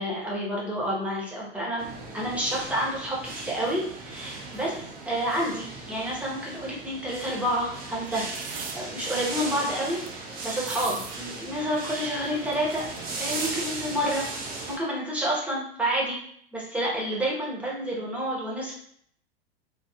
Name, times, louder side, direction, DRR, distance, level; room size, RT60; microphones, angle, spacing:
voice 1, 0.0-1.8 2.1-8.3 8.7-12.9 13.2-14.3 14.7-16.2 16.5-18.7, equal, 5° right, -5 dB, 0.9 m, -29 dB
sound 1, 1.8-14.8, right 3 dB, 30° right, 0.7 m, -37 dB
sound 2, 8.0-8.8 9.3-9.4 9.6-10.1 10.4-11.2 11.4-11.5 11.7-13.5 14.3-14.6, right 6 dB, 60° right, 0.5 m, -39 dB
3.5 x 2.0 x 2.3 m, 0.65 s
hypercardioid pair, 95°, 31 cm